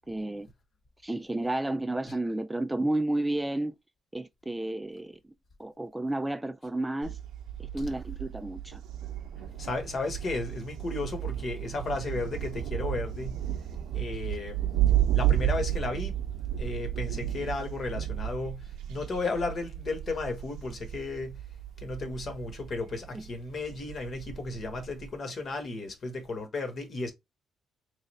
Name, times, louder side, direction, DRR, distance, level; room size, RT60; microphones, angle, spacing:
voice 1, 0.1-0.5 1.0-3.8 4.1-5.2 5.6-7.2 7.6-8.8, right 1 dB, 10° right, 0.3 m, -31 dB
Thunder, 7.0-25.1, right 11 dB, 85° right, 0.6 m, -33 dB
voice 2, 9.6-13.4 13.9-14.7 15.1-16.1 16.6-21.4 21.8-27.1, left 3 dB, 50° left, 1.2 m, -34 dB
3.2 x 2.5 x 4.0 m
cardioid pair, 90°, 0 cm